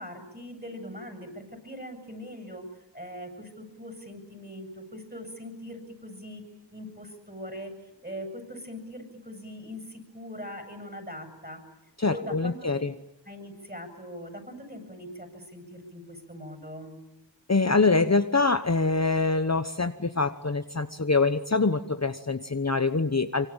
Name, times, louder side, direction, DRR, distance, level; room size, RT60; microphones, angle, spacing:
voice 1, 0.0-6.4 6.7-11.6 12.1-12.8 13.2-17.0, equal, 20° right, 6 dB, 7.9 m, -41 dB
voice 2, 12.0-12.9 17.5-23.5, left 3 dB, 35° left, 9 dB, 1.1 m, -24 dB
25.0 x 24.5 x 9.0 m, 0.89 s
wide cardioid pair, 45°, 45 cm